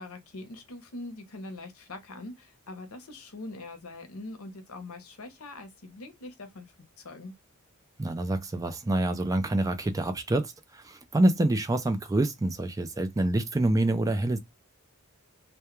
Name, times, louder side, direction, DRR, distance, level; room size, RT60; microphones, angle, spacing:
voice 1, 0.0-6.7 7.0-7.3, left 2 dB, 75° left, 0.7 m, -42 dB
voice 2, 8.0-14.4, right 1 dB, 15° right, 0.3 m, -26 dB
2.2 x 2.1 x 3.0 m
head